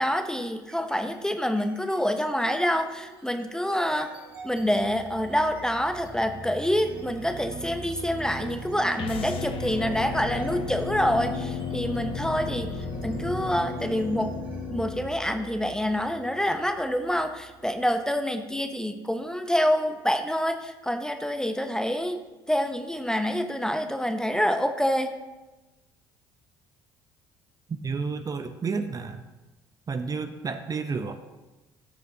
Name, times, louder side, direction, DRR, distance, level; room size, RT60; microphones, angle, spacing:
voice 1, 0.0-4.1 4.4-14.4 14.7-22.2 22.5-25.2, equal, 5° left, 7 dB, 0.7 m, -27 dB
sound 1, 0.6-1.1 1.5-18.1, right 3 dB, 90° right, 1.7 m, -40 dB
sound 2, 8.9-15.1, left 8 dB, 50° left, 0.6 m, -35 dB
voice 2, 27.7-29.2 29.9-31.1, right 5 dB, 30° right, 9 dB, 0.7 m, -31 dB
13.0 x 6.7 x 2.8 m, 1.1 s
hypercardioid pair, 55°, 12 cm